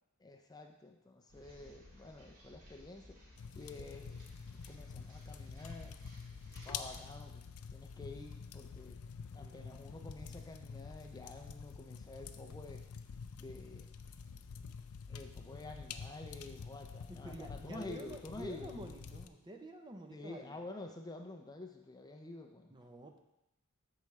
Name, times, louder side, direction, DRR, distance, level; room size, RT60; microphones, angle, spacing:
voice 1, 0.2-3.2 3.6-4.2 4.7-6.0 6.6-9.0 9.3-12.8 13.4-13.9 15.1-18.8 20.1-22.7, left 2 dB, 15° left, 3 dB, 0.5 m, -49 dB
sound 1, 1.3-7.0, left 1 dB, 70° right, 2.8 m, -58 dB
sound 2, 3.4-19.3, left 6 dB, 70° left, 0.5 m, -48 dB
voice 2, 9.4-9.8 17.1-20.6 22.7-23.2, right 1 dB, 20° right, 4 dB, 0.7 m, -49 dB
13.5 x 4.8 x 3.2 m, 0.90 s
head